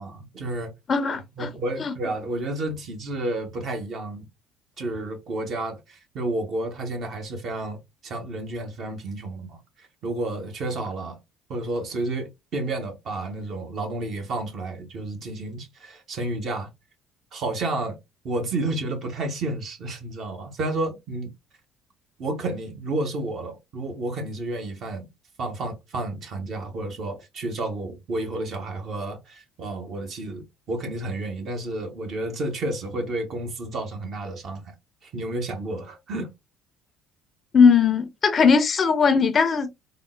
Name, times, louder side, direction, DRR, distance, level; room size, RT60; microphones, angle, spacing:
voice 1, 0.0-0.7 1.4-4.3 4.8-7.8 8.0-9.6 10.0-11.2 11.5-16.7 17.3-18.0 18.2-21.3 22.2-25.1 25.4-34.6 35.0-36.3, right 2 dB, 50° right, 1.0 m, -31 dB
voice 2, 0.9-1.5 1.8-1.9 37.5-39.7, left 5 dB, 40° left, 0.4 m, -19 dB
3.7 x 2.0 x 2.3 m
figure-of-eight pair, 55°, 0 cm